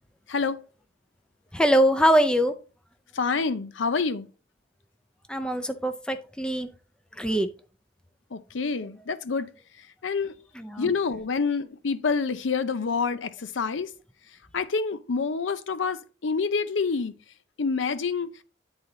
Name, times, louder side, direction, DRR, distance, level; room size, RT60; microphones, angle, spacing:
voice 1, 0.3-0.6 3.1-4.3 8.3-9.5 9.8-10.3 10.8-13.9 14.5-17.1 17.6-18.4, left 5 dB, 80° left, 0.6 m, -27 dB
voice 2, 1.5-2.5 5.3-6.7 7.2-7.5 10.6-10.9, equal, 5° left, 0.5 m, -23 dB
9.6 x 4.0 x 3.8 m
head